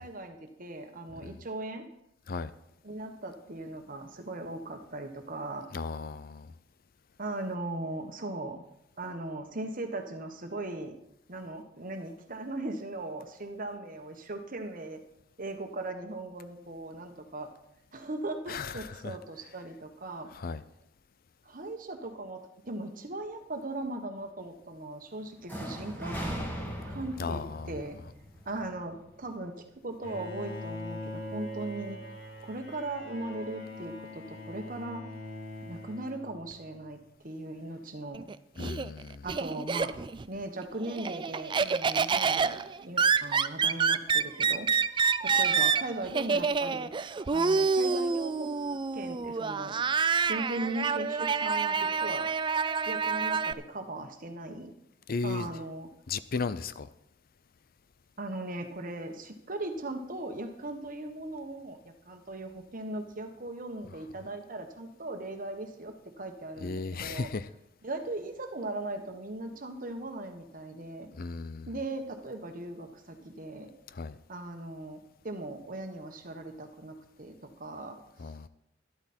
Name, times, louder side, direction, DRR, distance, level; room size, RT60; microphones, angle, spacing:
voice 1, 0.0-1.8 2.8-5.7 7.2-8.6 9.0-11.0 11.3-15.0 15.4-17.5 17.9-20.3 21.4-26.2 26.9-28.0 28.4-32.0 32.4-35.0 35.7-38.3 39.2-39.9 40.3-44.7 45.2-47.0 47.3-48.5 48.9-49.8 50.3-52.3 52.9-54.7 55.2-55.9 58.2-67.3 67.8-71.1 71.7-73.7 74.3-78.3, right 2 dB, 45° right, 6 dB, 1.4 m, -38 dB
voice 2, 5.7-6.5 18.5-19.1 20.3-20.6 27.2-27.7 38.6-39.3 55.1-55.5 56.1-56.9 66.6-67.5 71.2-71.7 73.9-74.1 78.2-78.5, left 4 dB, 50° left, 15 dB, 0.5 m, -35 dB
sound 1, 25.5-29.4, equal, 10° left, 2.4 m, -39 dB
Bowed string instrument, 30.0-36.8, left 1 dB, 75° left, 3.7 m, -42 dB
Laughter, 38.1-40.3 40.6-53.5, right 5 dB, 25° right, 0.4 m, -28 dB
12.0 x 12.0 x 4.4 m, 0.84 s
head